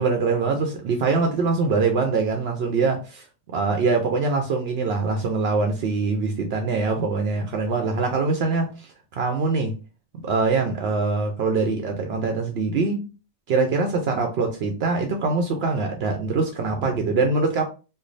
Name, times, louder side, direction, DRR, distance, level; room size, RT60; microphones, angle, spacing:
voice 1, 0.0-9.7 10.2-13.0 13.5-17.6, right 4 dB, 70° right, 4 dB, 0.8 m, -23 dB
3.2 x 2.2 x 3.8 m, 0.32 s
omnidirectional pair, 1.1 m